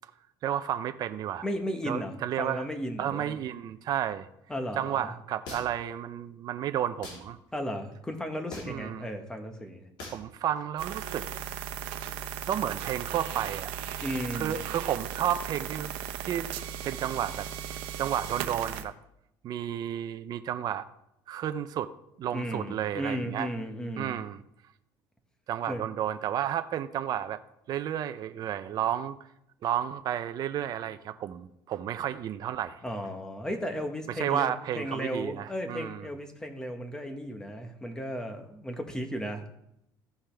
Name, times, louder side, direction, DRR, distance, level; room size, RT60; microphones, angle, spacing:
voice 1, 0.4-1.5 1.9-2.7 3.0-4.3 4.8-7.4 8.7-9.0 10.1-11.3 12.5-13.7 14.3-15.9 16.2-16.5 16.8-18.9 19.4-20.9 21.3-21.9 22.2-23.5 24.0-24.4 25.5-27.4 27.7-29.2 29.6-32.8 34.2-36.0, right 10 dB, 50° right, 9 dB, 0.5 m, -32 dB
voice 2, 1.4-3.4 4.5-5.1 7.5-9.8 14.0-14.6 22.3-24.2 25.7-25.8 32.8-39.4, equal, 10° left, 4 dB, 1.3 m, -35 dB
sound 1, 5.5-5.9 7.0-7.2 8.5-8.9 10.0-10.3, left 2 dB, 65° left, 3.4 m, -41 dB
sound 2, 10.8-18.8, right 9 dB, 90° right, 0.8 m, -37 dB
15.0 x 5.6 x 3.4 m, 0.80 s
cardioid pair, 125°, 9 cm